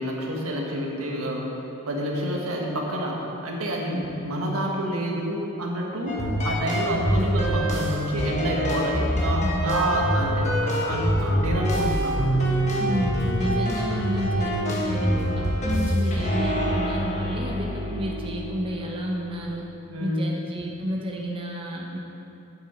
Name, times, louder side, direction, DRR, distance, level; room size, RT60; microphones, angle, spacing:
voice 1, 0.0-12.1 19.9-20.3, right 1 dB, 80° right, -1 dB, 1.5 m, -28 dB
sound 1, 6.1-19.5, equal, 35° left, 1.4 m, -25 dB
voice 2, 9.4-9.8 12.8-19.6 20.0-22.0, equal, 25° right, -1 dB, 0.8 m, -31 dB
8.9 x 8.2 x 4.9 m, 2.9 s
head